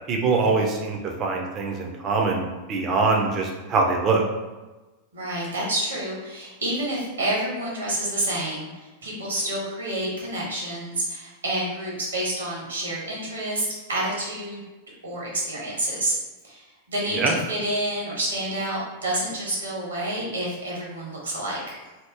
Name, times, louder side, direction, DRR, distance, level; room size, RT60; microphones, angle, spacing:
voice 1, 0.1-4.2 17.1-17.4, right 3 dB, 30° right, 1 dB, 0.6 m, -23 dB
voice 2, 5.1-14.6 15.0-16.1 16.4-21.6, right 1 dB, 75° right, -4 dB, 1.3 m, -29 dB
2.9 x 2.7 x 3.5 m, 1.2 s
figure-of-eight pair, 90°, 0 cm